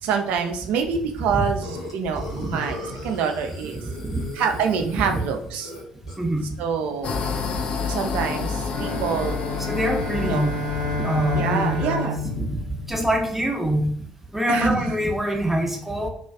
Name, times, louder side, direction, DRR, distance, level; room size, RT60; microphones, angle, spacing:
voice 1, 0.0-3.8 4.3-5.7 6.6-7.1 7.9-9.4 10.2-10.5 11.3-12.2 14.5-15.0, right 6 dB, 55° right, 6 dB, 0.3 m, -26 dB
Burping eructation, 1.6-6.4, left 1 dB, 90° left, 0.6 m, -38 dB
voice 2, 3.7-4.3 6.2-6.4 9.6-12.5 12.9-13.9 14.3-16.1, right 1 dB, 10° right, 2 dB, 0.6 m, -25 dB
sound 1, 7.0-12.1, left 5 dB, 40° left, 0.3 m, -29 dB
sound 2, 8.7-13.4, left 3 dB, 65° left, 0.8 m, -31 dB
2.4 x 2.3 x 2.2 m, 0.64 s
figure-of-eight pair, 50°, 3 cm